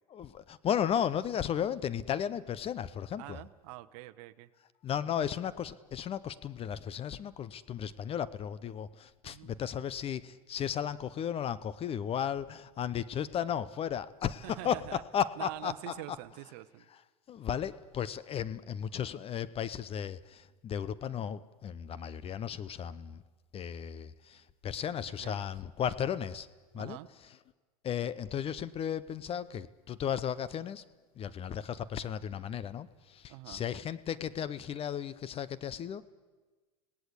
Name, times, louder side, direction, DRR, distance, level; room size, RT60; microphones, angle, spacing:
voice 1, 0.1-3.4 4.8-16.0 16.9-17.0 17.3-23.2 23.5-26.5 26.7-27.0 27.3-27.4 27.8-30.8 31.2-36.0, left 9 dB, 30° left, 16 dB, 0.8 m, -35 dB
voice 2, 3.2-4.5 9.2-9.5 14.4-15.0 15.4-16.8 25.2-25.4 26.8-27.1 33.3-33.6, right 17 dB, 60° right, 10 dB, 1.0 m, -45 dB
26.0 x 18.0 x 8.3 m, 1.4 s
hypercardioid pair, 100°, 19 cm